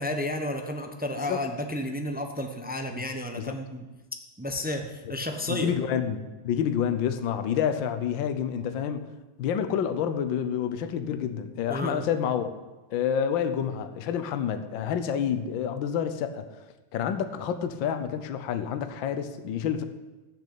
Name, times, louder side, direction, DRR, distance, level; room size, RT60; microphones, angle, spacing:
voice 1, 0.0-3.9 4.4-5.7 11.7-12.1, left 1 dB, 15° right, 4 dB, 0.3 m, -32 dB
voice 2, 5.5-9.1 9.4-12.5 12.9-16.5 16.9-19.8, left 8 dB, 65° left, 9 dB, 1.6 m, -28 dB
15.0 x 6.7 x 8.4 m, 1.1 s
omnidirectional pair, 2.4 m